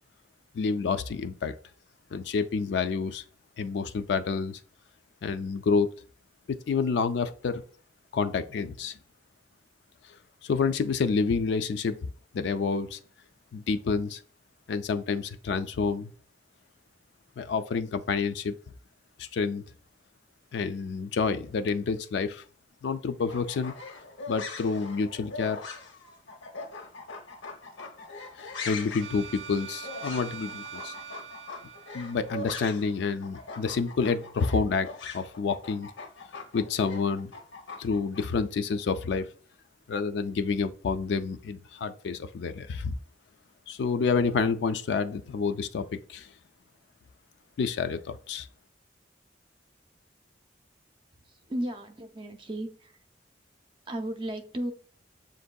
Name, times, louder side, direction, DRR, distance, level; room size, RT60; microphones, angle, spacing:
voice 1, 0.5-1.5 2.1-3.2 3.6-4.6 5.2-5.9 6.5-7.6 8.1-9.0 10.4-12.0 12.3-13.0 13.5-14.2 14.7-16.1 17.4-18.5 19.2-19.6 20.5-22.4 22.8-23.7 24.3-25.6 28.4-30.9 31.9-34.9 35.1-35.9 36.5-37.3 37.8-39.3 39.9-43.0 43.7-46.3 47.6-48.5, left 5 dB, 70° left, 0.3 m, -28 dB
sound 1, 23.2-33.0 33.2-38.2, left 3 dB, 90° left, 0.7 m, -41 dB
sound 2, 29.0-32.9, right 7 dB, 85° right, 0.5 m, -43 dB
voice 2, 51.1-53.0 53.9-54.7, right 1 dB, 25° right, 0.5 m, -35 dB
7.1 x 2.6 x 2.2 m
head